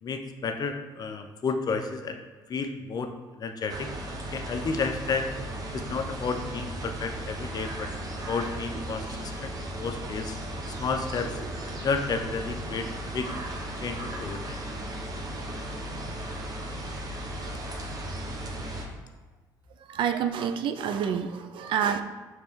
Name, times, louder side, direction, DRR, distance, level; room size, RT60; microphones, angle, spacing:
voice 1, 0.0-2.2 2.5-5.3 5.7-10.4 10.8-11.4 11.8-13.3 13.8-14.6, left 4 dB, 45° left, 7 dB, 0.5 m, -32 dB
sound 1, 3.7-18.9, right 1 dB, 40° right, 0.8 m, -36 dB
voice 2, 19.9-22.0, right 8 dB, 65° right, 8 dB, 0.4 m, -28 dB
5.2 x 3.3 x 3.1 m, 1.3 s
supercardioid pair, 65°, 9 cm